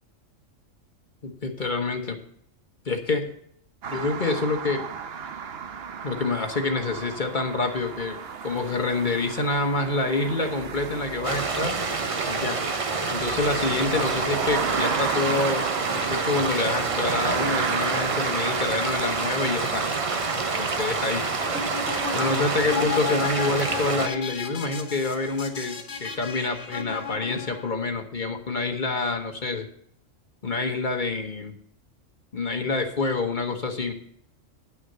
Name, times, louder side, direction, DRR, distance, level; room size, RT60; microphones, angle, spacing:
voice 1, 1.2-2.2 2.8-3.3 3.9-4.8 6.0-8.2 8.4-11.8 12.3-12.6 13.1-15.7 15.9-19.9 20.6-21.2 22.1-29.7 30.4-31.6 32.3-33.9, left 3 dB, 40° left, 5 dB, 1.2 m, -27 dB
sound 1, 3.8-22.6, right 6 dB, 55° right, 0.9 m, -33 dB
sound 2, 11.2-24.1, right 4 dB, 30° right, 0.7 m, -28 dB
sound 3, 21.4-27.7, left 6 dB, 60° left, 1.6 m, -34 dB
10.0 x 6.4 x 6.7 m, 0.66 s
omnidirectional pair, 1.4 m